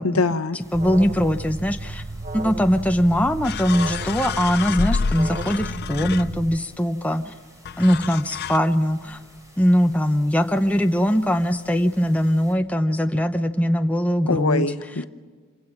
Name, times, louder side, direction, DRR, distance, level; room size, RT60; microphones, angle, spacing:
voice 1, 0.0-0.6 14.2-15.0, left 3 dB, 75° left, 10 dB, 0.9 m, -23 dB
sound 1, 0.6-12.5, equal, 15° right, 3.1 m, -51 dB
voice 2, 0.7-2.0 2.3-7.3 7.8-9.2 9.6-14.7, equal, 5° left, 6 dB, 0.7 m, -21 dB
Alarm, 0.7-6.6, right 2 dB, 35° right, 0.7 m, -33 dB
sound 2, 3.4-6.7 7.7-8.6, left 5 dB, 45° left, 0.5 m, -29 dB
27.0 x 16.5 x 5.9 m, 1.5 s
head